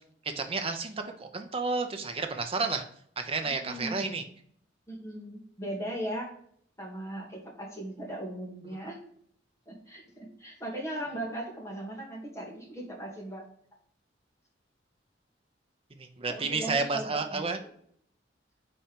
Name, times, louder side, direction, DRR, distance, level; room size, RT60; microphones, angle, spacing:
voice 1, 0.4-2.8 3.2-4.2 16.0-17.6, right 4 dB, 30° right, 6 dB, 0.7 m, -31 dB
voice 2, 3.6-4.1 4.9-6.3 6.8-9.0 9.7-13.4 16.3-17.7, right 1 dB, 15° left, -2 dB, 1.6 m, -38 dB
4.4 x 4.2 x 5.1 m, 0.63 s
head